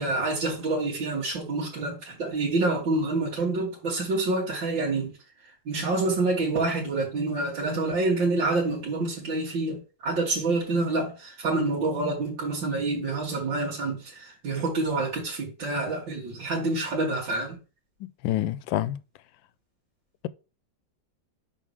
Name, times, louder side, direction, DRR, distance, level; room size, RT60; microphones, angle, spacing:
voice 1, 0.0-5.1 5.7-17.6, right 2 dB, 85° right, 2.6 m, -27 dB
voice 2, 18.0-19.0, left 13 dB, 85° left, 1.3 m, -28 dB
5.5 x 4.8 x 6.2 m
omnidirectional pair, 2.0 m